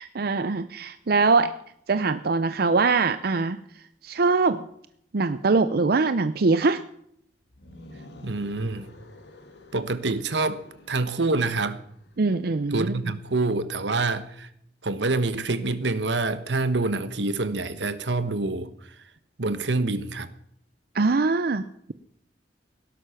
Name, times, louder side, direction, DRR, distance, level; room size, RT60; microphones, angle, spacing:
voice 1, 0.0-1.5 1.9-3.6 4.0-4.7 5.1-6.8 12.2-13.1 20.9-21.6, right 4 dB, 60° right, 11 dB, 0.6 m, -22 dB
sound 1, 7.5-12.5, left 1 dB, 80° left, 2.4 m, -49 dB
voice 2, 8.2-8.9 9.7-11.8 12.7-14.5 14.8-18.7 19.4-20.3, right 3 dB, 85° right, 12 dB, 1.2 m, -26 dB
17.5 x 11.5 x 5.8 m, 0.69 s
head